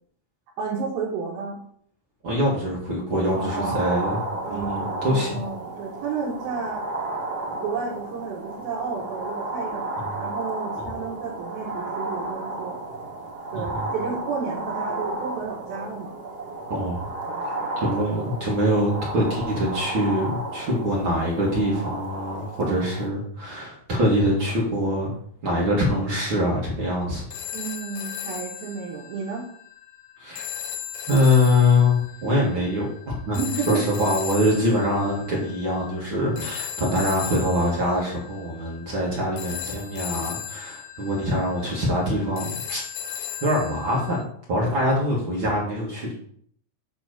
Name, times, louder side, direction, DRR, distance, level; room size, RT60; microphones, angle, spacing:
voice 1, 0.6-1.6 3.3-3.9 4.4-6.8 7.5-12.8 13.5-16.2 17.3-17.8 27.5-29.5 33.3-33.9, right 5 dB, 80° right, -4 dB, 3.1 m, -32 dB
voice 2, 2.2-4.2 4.5-5.3 10.0-10.1 13.5-13.9 16.7-17.1 17.8-25.1 25.4-27.3 30.2-30.4 31.1-33.4 33.7-42.8 43.4-46.2, left 1 dB, 45° right, -4 dB, 1.8 m, -24 dB
sound 1, 3.3-23.1, right 2 dB, 65° right, 0.9 m, -33 dB
sound 2, 27.3-44.2, left 10 dB, 75° left, 2.2 m, -37 dB
8.9 x 3.3 x 6.4 m, 0.63 s
omnidirectional pair, 4.2 m